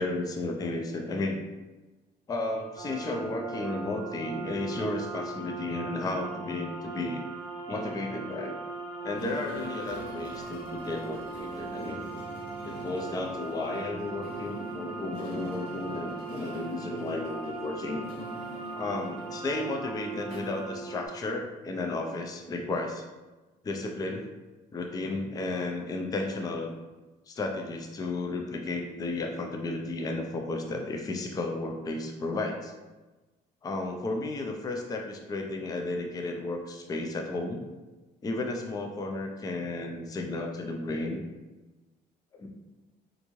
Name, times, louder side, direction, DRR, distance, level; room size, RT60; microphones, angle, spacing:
voice 1, 0.0-1.4 2.3-7.3 7.7-8.6 9.0-12.1 12.6-18.0 18.7-23.0 23.6-24.3 24.7-26.7 27.3-32.7 33.6-37.6 38.2-41.2 42.4-42.5, left 2 dB, 20° left, 2 dB, 0.4 m, -33 dB
sound 1, 2.8-21.1, right 4 dB, 35° right, 0.8 m, -39 dB
sound 2, 9.1-21.4, left 1 dB, 85° left, 1.3 m, -45 dB
3.5 x 2.5 x 3.0 m, 1.2 s
cardioid pair, 110°, 17 cm